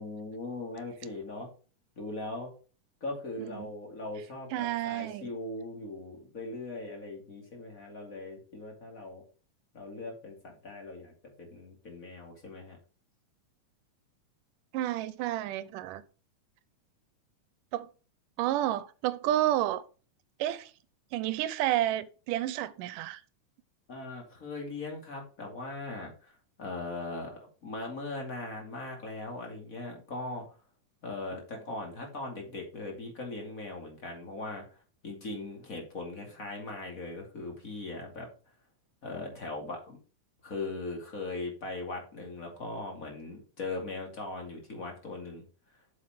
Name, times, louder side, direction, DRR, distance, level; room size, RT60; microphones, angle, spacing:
voice 1, 0.0-1.5 1.9-2.5 3.0-9.2 9.7-11.1 11.4-12.8 23.9-30.4 31.0-34.6 35.0-38.3 39.0-40.0 40.4-45.4, left 2 dB, 30° left, 2.6 m, -39 dB
voice 2, 4.5-5.3 14.7-16.0 17.7-17.9 18.4-19.9 20.4-20.7 21.1-23.2, right 13 dB, 85° right, 2.3 m, -30 dB
7.6 x 6.4 x 4.9 m
omnidirectional pair, 3.7 m